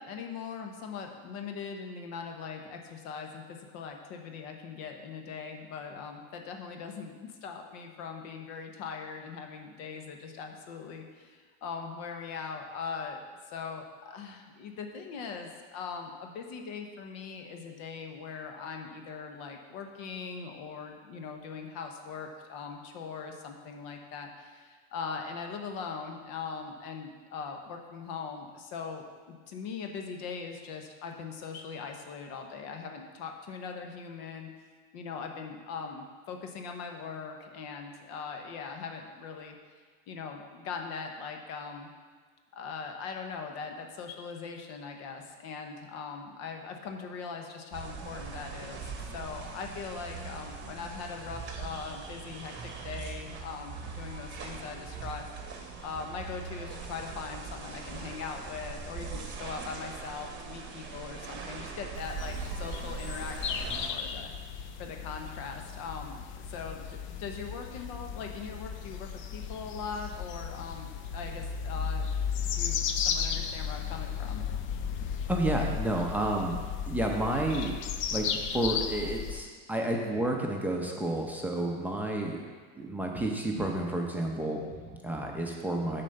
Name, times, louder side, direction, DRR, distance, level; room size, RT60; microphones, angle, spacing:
voice 1, 0.0-34.5 34.9-39.5 40.1-41.9 42.5-48.8 49.1-55.5 55.8-64.3 64.8-72.1 72.4-74.4, left 5 dB, 65° left, 4 dB, 1.0 m, -41 dB
sound 1, 47.7-63.9, right 5 dB, 35° right, 1.2 m, -41 dB
sound 2, 61.9-79.4, left 7 dB, 40° left, 0.5 m, -35 dB
voice 2, 75.3-76.6 76.8-77.7 78.1-82.4 82.8-86.0, right 1 dB, 5° right, -1 dB, 0.7 m, -31 dB
7.5 x 4.3 x 6.5 m, 1.5 s
supercardioid pair, 140°, 31 cm